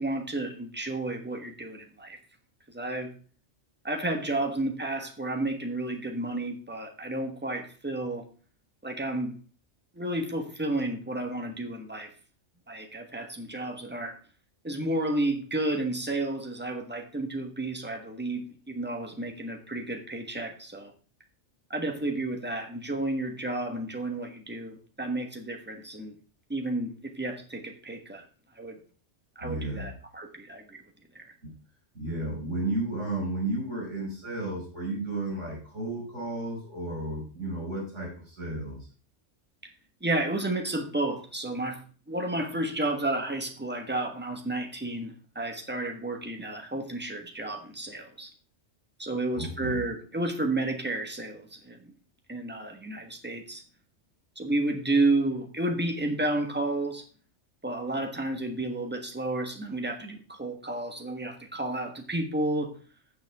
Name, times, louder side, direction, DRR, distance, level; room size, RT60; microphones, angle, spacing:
voice 1, 0.0-2.2 2.7-3.1 3.8-8.3 8.8-9.4 9.9-12.1 12.7-14.2 14.6-20.9 21.7-26.1 26.5-28.2 28.6-28.8 29.3-30.8 31.1-31.3 40.0-41.8 42.1-48.3 49.0-51.9 52.3-53.6 54.4-57.0 57.6-62.7, right 2 dB, 10° right, 3 dB, 1.2 m, -31 dB
voice 2, 29.4-29.9 31.4-31.5 31.9-38.8 49.4-49.8, right 2 dB, 80° right, -3 dB, 6.1 m, -33 dB
16.0 x 5.6 x 3.5 m, 0.37 s
omnidirectional pair, 1.2 m